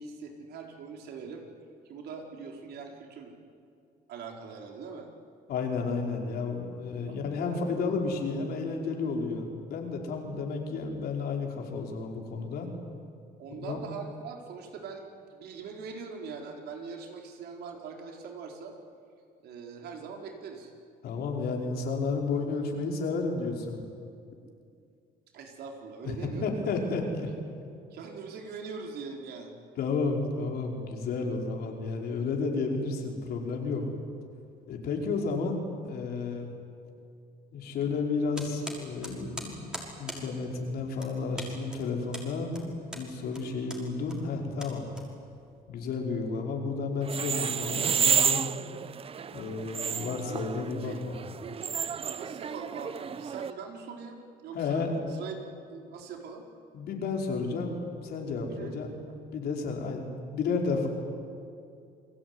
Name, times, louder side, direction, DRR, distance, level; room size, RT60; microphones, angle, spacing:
voice 1, 0.0-1.4 1.8-3.3 4.1-5.1 7.1-7.7 13.4-18.7 19.4-20.7 25.3-26.7 27.9-29.5 50.8-51.0 52.2-55.4 55.7-56.5 58.5-58.7 60.8-60.9, right 5 dB, 75° right, 2 dB, 4.3 m, -42 dB
voice 2, 5.5-12.7 13.6-13.8 21.0-23.9 26.0-26.1 26.4-27.3 29.8-33.8 34.7-36.5 37.5-42.6 43.0-44.9 45.7-48.4 49.3-51.2 54.5-55.0 56.7-58.9 59.3-60.9, left 4 dB, 70° left, 1 dB, 5.2 m, -32 dB
sound 1, 38.3-45.5, equal, 5° right, 5.6 m, -43 dB
sound 2, 47.0-53.5, right 7 dB, 35° right, 0.7 m, -30 dB
29.0 x 20.5 x 9.7 m, 2.4 s
cardioid pair, 110°, 17 cm